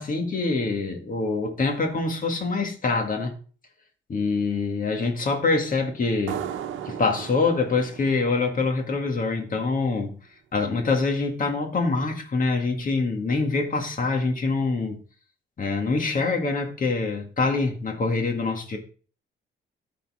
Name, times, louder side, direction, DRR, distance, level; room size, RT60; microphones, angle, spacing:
voice 1, 0.0-3.3 4.1-6.4 6.8-10.2 10.5-15.0 15.6-18.8, left 3 dB, 45° left, 1.9 m, -25 dB
sound 1, 6.3-9.6, right 10 dB, 80° right, 0.9 m, -37 dB
13.0 x 4.3 x 3.5 m
cardioid pair, 90°, 20 cm